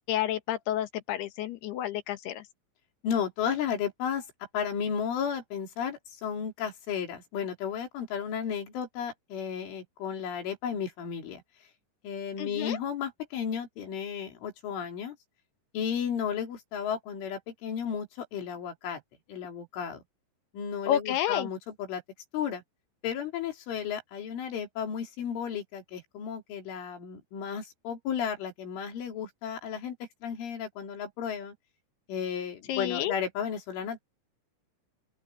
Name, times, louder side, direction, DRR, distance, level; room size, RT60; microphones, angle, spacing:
voice 1, 0.1-2.4 12.4-12.8 20.9-21.5 32.7-33.1, left 11 dB, 65° left, 3.1 m, -30 dB
voice 2, 3.0-4.3 4.5-11.4 12.0-15.2 15.7-19.0 19.3-20.0 20.5-22.0 22.3-22.6 23.0-30.0 30.2-31.5 32.1-34.0, left 8 dB, 85° left, 6.1 m, -33 dB
open air
omnidirectional pair, 5.4 m